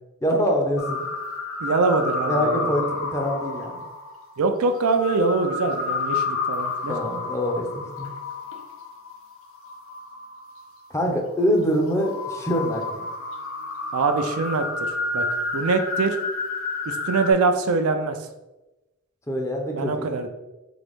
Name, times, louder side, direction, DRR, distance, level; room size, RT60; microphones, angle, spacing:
voice 1, 0.2-1.0 2.3-3.9 6.9-8.1 10.9-13.1 19.3-20.0, equal, 15° left, 1 dB, 0.6 m, -24 dB
sound 1, 0.8-10.9 11.4-17.3, left 3 dB, 65° left, 0.7 m, -30 dB
voice 2, 1.6-2.7 4.4-7.0 13.9-15.3 15.5-16.2 16.9-18.3 19.7-20.3, right 3 dB, 75° right, 6 dB, 0.5 m, -23 dB
3.9 x 3.4 x 3.5 m, 1.0 s
head